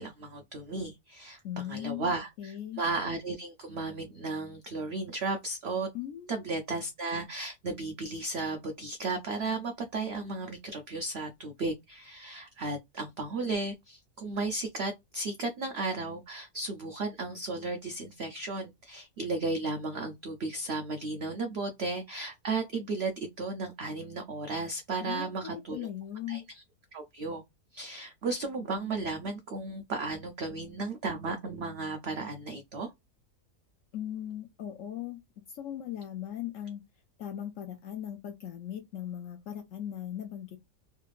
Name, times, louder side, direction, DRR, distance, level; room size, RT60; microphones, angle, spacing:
voice 1, 0.0-1.4 1.7-5.9 6.3-25.9 26.3-26.6 26.9-27.4 27.7-32.9, right 3 dB, 90° right, 0.5 m, -34 dB
voice 2, 1.4-2.1 2.4-2.8 5.9-6.4 25.0-26.4 33.9-35.2 35.5-36.8 37.2-40.6, left 11 dB, 70° left, 0.7 m, -38 dB
3.3 x 3.1 x 2.4 m
omnidirectional pair, 1.8 m